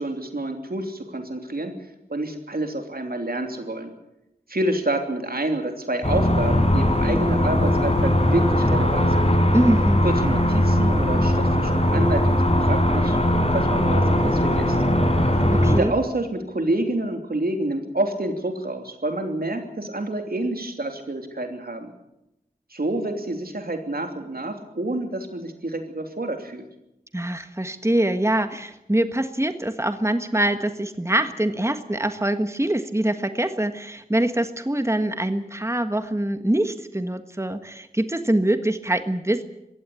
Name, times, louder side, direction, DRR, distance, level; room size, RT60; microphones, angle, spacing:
voice 1, 0.0-1.7 2.1-3.9 4.5-9.3 10.0-13.2 13.5-14.8 15.7-21.9 22.7-26.6, right 1 dB, 80° right, 5 dB, 3.1 m, -28 dB
sound 1, 6.0-15.8, left 1 dB, 40° left, 4.8 m, -20 dB
voice 2, 9.5-10.0 15.5-15.9 27.1-39.4, right 1 dB, 20° right, 9 dB, 1.5 m, -24 dB
22.0 x 16.5 x 8.5 m, 0.89 s
wide cardioid pair, 45°, 15 cm